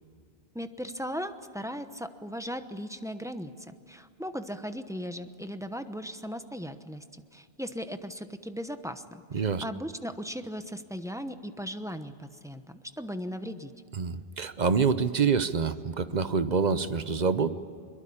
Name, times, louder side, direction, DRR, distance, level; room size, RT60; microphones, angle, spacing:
voice 1, 0.5-3.5 3.9-13.7, equal, 5° right, 8 dB, 0.9 m, -37 dB
voice 2, 9.3-9.6 13.9-17.6, right 5 dB, 45° right, 12 dB, 0.9 m, -26 dB
23.0 x 22.0 x 8.7 m, 2.4 s
omnidirectional pair, 1.1 m